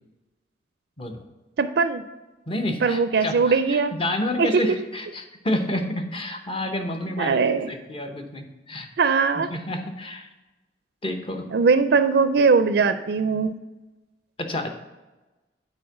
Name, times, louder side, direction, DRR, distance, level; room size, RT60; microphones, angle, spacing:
voice 1, 1.6-2.0 2.7-3.9 4.4-4.6 7.2-7.7 9.0-9.5 11.5-13.5, right 5 dB, 65° right, 11 dB, 0.4 m, -20 dB
voice 2, 2.5-7.4 7.7-8.9 9.3-10.3 11.0-11.5 14.4-14.7, left 1 dB, 30° left, 5 dB, 0.9 m, -29 dB
8.6 x 4.4 x 5.9 m, 1.1 s
head